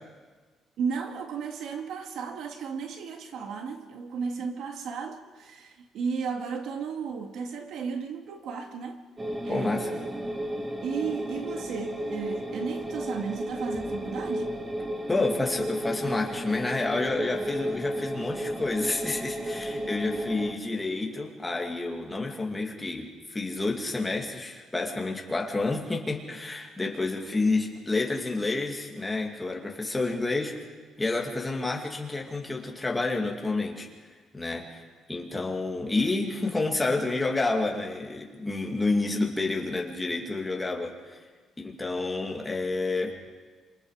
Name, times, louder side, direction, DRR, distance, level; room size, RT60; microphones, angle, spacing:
voice 1, 0.8-9.1 9.4-10.2 10.8-14.6 26.8-26.9, right 6 dB, 70° right, 2.0 m, -34 dB
sound 1, 9.2-20.5, equal, 15° right, 1.5 m, -33 dB
voice 2, 9.5-9.9 15.1-30.5 31.0-33.9 34.3-34.8 35.1-41.2 41.6-43.1, left 3 dB, 10° left, 2.5 m, -29 dB
27.5 x 26.5 x 5.0 m
cardioid pair, 170°, 0 cm